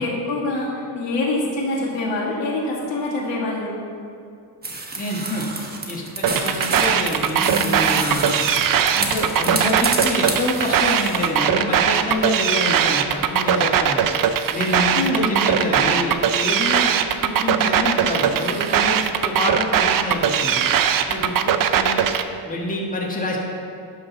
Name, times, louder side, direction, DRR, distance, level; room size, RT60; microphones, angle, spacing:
voice 1, 0.0-3.8 7.3-7.8 14.9-15.4, left 2 dB, 85° left, -4 dB, 2.0 m, -25 dB
sound 1, 4.6-11.3, right 2 dB, 20° right, 1.3 m, -28 dB
voice 2, 5.0-5.5 5.9-8.4 8.9-14.0 14.5-17.0 17.2-20.7 21.1-22.0 22.5-23.4, left 1 dB, 20° left, -3 dB, 1.5 m, -26 dB
sound 2, 6.2-22.2, right 9 dB, 50° right, 0.5 m, -20 dB
11.0 x 3.9 x 5.9 m, 2.5 s
cardioid pair, 95°, 43 cm